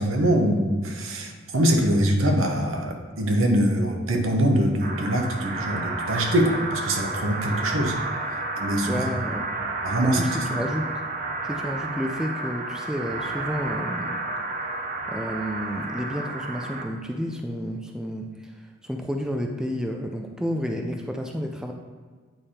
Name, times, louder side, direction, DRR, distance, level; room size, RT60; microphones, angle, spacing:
voice 1, 0.0-7.9 8.6-9.1 9.8-10.4, right 1 dB, 80° right, 3 dB, 1.0 m, -23 dB
sound 1, 4.8-16.8, right 2 dB, 40° right, 0.7 m, -31 dB
voice 2, 8.8-9.4 10.0-10.9 11.4-14.2 15.1-18.5 18.8-21.7, equal, 5° right, 2 dB, 0.4 m, -30 dB
9.0 x 3.4 x 4.3 m, 1.5 s
head